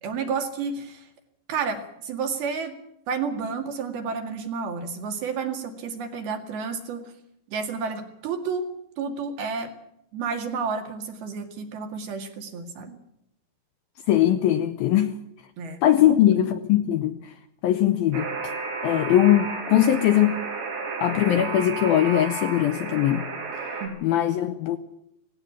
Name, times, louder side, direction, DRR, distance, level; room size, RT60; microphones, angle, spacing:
voice 1, 0.0-1.1 1.5-2.7 3.1-7.1 7.5-8.7 9.0-9.7 10.1-13.0 15.6-16.4 23.8-24.0, right 5 dB, 65° right, 5 dB, 3.8 m, -31 dB
voice 2, 14.1-15.1 15.8-17.3 17.6-18.3 18.8-20.4 21.0-23.3 24.0-24.8, left 12 dB, 75° left, 9 dB, 2.3 m, -21 dB
Alarm, 18.1-23.9, right 4 dB, 85° right, 7.2 m, -32 dB
18.0 x 17.0 x 8.5 m, 0.79 s
omnidirectional pair, 5.1 m